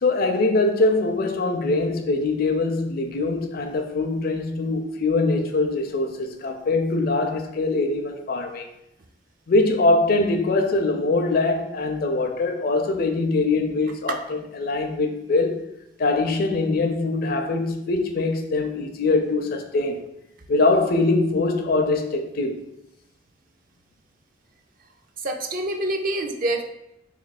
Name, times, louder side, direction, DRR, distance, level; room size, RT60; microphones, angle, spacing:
voice 1, 0.0-8.7 9.5-15.6 16.0-20.0 20.5-22.6, left 3 dB, 50° left, 0.4 m, -23 dB
voice 2, 25.2-26.6, right 1 dB, 45° right, 0.5 m, -26 dB
3.1 x 3.0 x 4.1 m
head